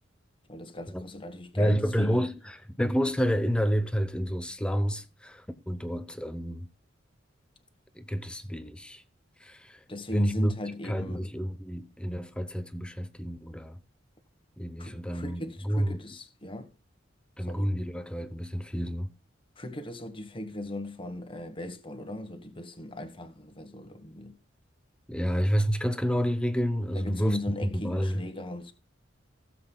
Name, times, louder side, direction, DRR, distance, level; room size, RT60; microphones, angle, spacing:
voice 1, 0.5-2.2 9.9-11.3 14.8-16.7 17.5-17.7 19.6-24.4 26.9-28.7, left 1 dB, 30° left, 1.3 m, -38 dB
voice 2, 1.5-6.7 7.9-9.0 9.4-9.8 10.1-10.5 10.8-13.8 14.6-16.0 17.4-19.1 25.1-27.4 27.7-28.2, equal, 5° left, 0.7 m, -29 dB
17.0 x 7.7 x 2.3 m
head